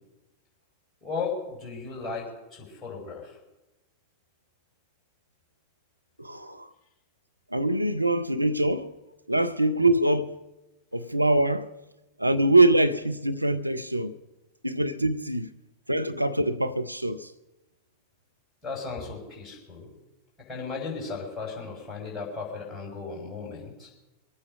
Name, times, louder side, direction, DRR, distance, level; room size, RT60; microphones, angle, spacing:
voice 1, 1.0-3.4 18.6-19.9 20.5-23.9, left 4 dB, 10° left, 6.1 m, -35 dB
voice 2, 6.2-6.7 7.5-9.0 9.3-10.4 10.9-11.7 12.2-14.1 14.6-15.5 15.9-17.3, right 1 dB, 85° right, 0.6 m, -24 dB
25.0 x 8.8 x 5.3 m
figure-of-eight pair, 90°, 0 cm